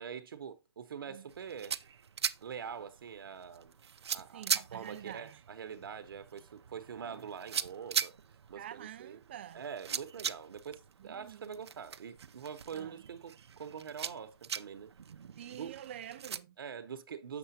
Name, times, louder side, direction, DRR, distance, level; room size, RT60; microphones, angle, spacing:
voice 1, 0.0-1.8 2.4-3.7 4.1-8.1 8.5-9.2 9.5-14.9 15.6-15.7 16.6-17.4, right 7 dB, 60° right, 1.0 m, -44 dB
sound 1, 1.3-16.4, right 7 dB, 90° right, 0.6 m, -41 dB
voice 2, 4.3-5.4 8.6-9.6 11.0-11.5 12.7-13.0 15.4-16.6, right 11 dB, 25° right, 0.4 m, -47 dB
7.7 x 6.9 x 2.8 m
hypercardioid pair, 165°, 13 cm